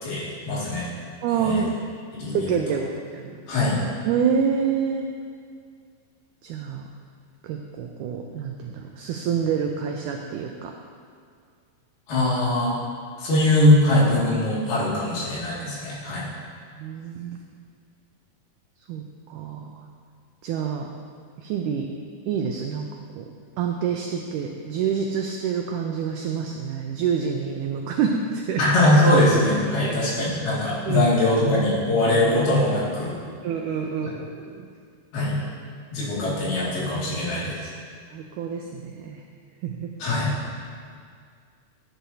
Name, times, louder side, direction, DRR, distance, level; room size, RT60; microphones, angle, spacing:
voice 1, 0.0-0.9 1.4-1.6 2.1-2.5 3.5-3.8 12.1-12.8 13.2-16.3 28.6-33.1 35.1-35.4 35.9-37.6 40.0-40.3, left 1 dB, 90° left, -7 dB, 4.2 m, -21 dB
voice 2, 1.2-1.7 2.3-3.3 4.0-5.1 6.4-6.9 7.4-10.7 16.8-17.4 18.9-19.0 19.3-19.9 20.4-20.9 21.4-21.9 22.3-22.9 23.2-23.3 23.6-28.6 29.8-30.0 30.9-31.1 33.4-34.7 38.1-39.2 39.6-39.9, right 7 dB, 90° right, 2 dB, 1.7 m, -27 dB
13.0 x 9.0 x 2.8 m, 2.1 s
omnidirectional pair, 4.2 m